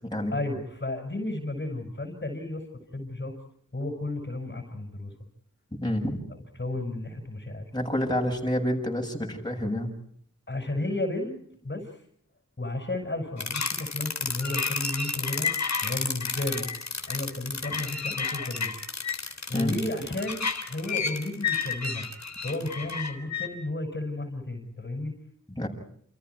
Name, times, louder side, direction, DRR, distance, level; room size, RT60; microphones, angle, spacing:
voice 1, 0.3-2.6 2.9-3.4 3.7-5.1 6.6-7.6 10.5-11.4 11.6-11.9 12.6-15.5 15.8-16.7 17.1-18.7 19.5-22.1 22.4-25.1, left 2 dB, 35° left, 4 dB, 6.3 m, -33 dB
voice 2, 5.8-6.2 7.7-9.9 19.5-19.7 25.5-25.7, left 1 dB, 15° left, 0 dB, 7.5 m, -28 dB
sound 1, 13.4-23.5, left 5 dB, 60° left, 3.6 m, -31 dB
29.5 x 29.0 x 4.7 m, 0.66 s
wide cardioid pair, 85°, 30 cm